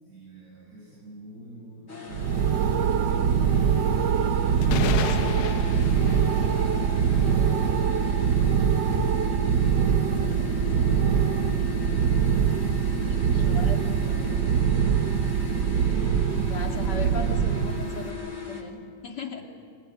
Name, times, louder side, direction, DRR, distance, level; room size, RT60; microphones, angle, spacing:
voice 1, 0.0-3.6 4.5-8.7 9.3-12.3 12.7-15.4 19.3-19.4, equal, 45° right, -6 dB, 8.4 m, -44 dB
sound 1, 1.9-18.6, left 6 dB, 30° left, 3.5 m, -38 dB
sound 2, 2.1-18.1, right 8 dB, 65° right, 1.4 m, -23 dB
sound 3, 3.5-12.0, left 9 dB, 85° left, 1.7 m, -36 dB
voice 2, 13.1-13.8 16.4-19.4, left 4 dB, 55° left, 2 dB, 3.1 m, -37 dB
24.5 x 23.5 x 9.4 m, 2.1 s
omnidirectional pair, 2.2 m